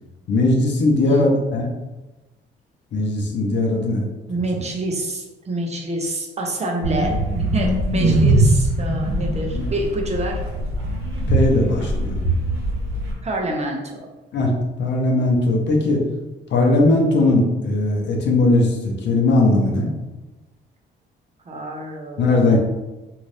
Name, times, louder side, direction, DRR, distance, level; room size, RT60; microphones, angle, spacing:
voice 1, 0.3-1.7 2.9-4.1 8.0-8.1 9.5-9.7 11.3-12.2 14.3-14.5 14.8-16.0 16.5-19.9 22.2-22.6, left 2 dB, 65° left, 0 dB, 0.7 m, -19 dB
voice 2, 1.0-1.4 4.3-10.4 13.2-13.8 21.5-22.6, right 1 dB, 35° right, 1 dB, 0.6 m, -27 dB
sound 1, 6.8-13.1, right 1 dB, 90° right, 0.9 m, -21 dB
2.7 x 2.4 x 3.3 m, 1.1 s
cardioid pair, 90°, 20 cm